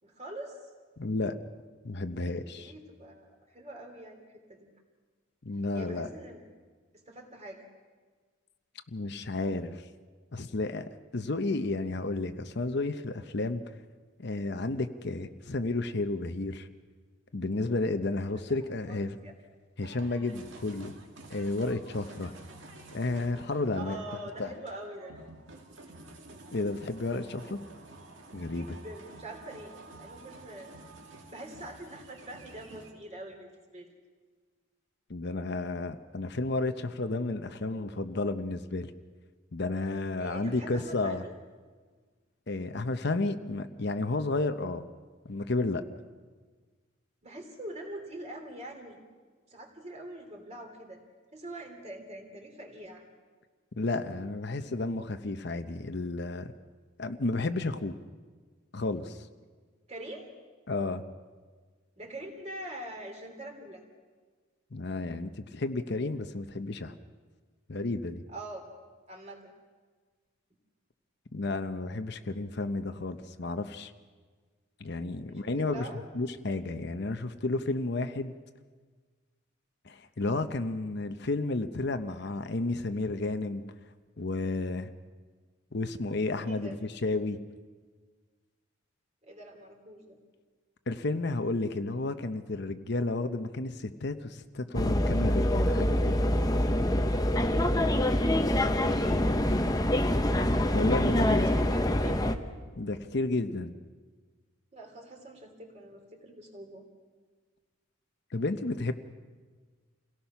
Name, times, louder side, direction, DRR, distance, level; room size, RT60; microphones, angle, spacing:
voice 1, 0.0-0.6 2.6-4.2 4.5-4.7 5.7-6.4 7.1-7.7 18.9-19.3 23.7-25.1 28.5-30.7 31.1-33.9 40.2-41.3 47.2-49.0 49.5-51.0 51.3-53.0 59.9-60.3 62.0-63.8 68.3-68.6 69.1-69.5 75.3-76.1 86.4-86.8 89.2-90.2 98.7-99.5 101.4-102.2 104.7-106.8, right 1 dB, 35° right, 3 dB, 3.0 m, -44 dB
voice 2, 1.0-1.4 1.8-2.7 5.4-6.1 8.9-9.8 10.3-13.6 14.2-16.7 17.3-19.2 19.8-20.9 21.3-22.3 22.9-24.0 24.4-24.5 26.5-27.6 28.3-28.8 35.1-38.9 39.5-41.2 42.5-44.8 45.2-45.8 53.8-56.5 57.0-58.0 58.7-59.3 60.7-61.0 64.7-66.9 67.7-68.2 71.3-73.9 74.8-75.9 76.1-78.3 79.8-83.6 84.2-84.9 85.7-86.8 87.0-87.4 90.9-96.3 100.7-101.5 102.8-103.7 108.3-108.9, left 2 dB, 55° left, 9 dB, 0.8 m, -32 dB
sound 1, 19.8-32.9, right 2 dB, 65° right, 2.2 m, -50 dB
sound 2, 94.7-102.4, left 1 dB, 20° left, 0.8 m, -25 dB
28.0 x 17.5 x 5.8 m, 1.5 s
head